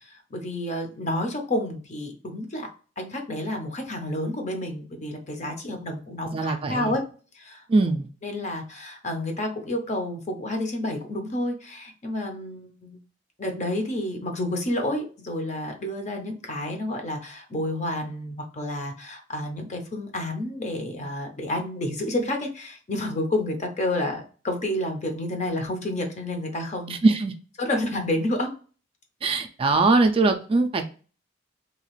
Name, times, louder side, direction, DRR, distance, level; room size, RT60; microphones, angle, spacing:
voice 1, 0.1-2.7 3.0-7.0 7.3-7.6 8.2-13.0 13.4-27.0 27.6-28.5, left 1 dB, 40° left, 4 dB, 0.6 m, -30 dB
voice 2, 6.3-7.0 7.7-8.1 26.9-27.3 29.2-30.8, right 3 dB, 30° right, 6 dB, 0.3 m, -21 dB
2.8 x 2.4 x 3.0 m, 0.37 s
head